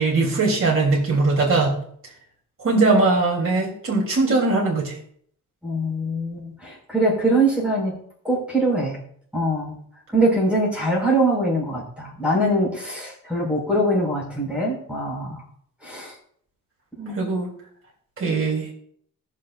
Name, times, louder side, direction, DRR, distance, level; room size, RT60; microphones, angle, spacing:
voice 1, 0.0-1.8 2.6-5.0 17.1-17.5 18.2-18.7, right 3 dB, 40° right, -3 dB, 3.3 m, -20 dB
voice 2, 5.6-7.9 8.2-9.0 9.3-9.7 10.1-15.4 15.8-16.1 17.0-17.2, right 1 dB, 5° right, -3 dB, 5.1 m, -23 dB
19.5 x 6.6 x 2.6 m, 0.62 s
cardioid pair, 115°, 34 cm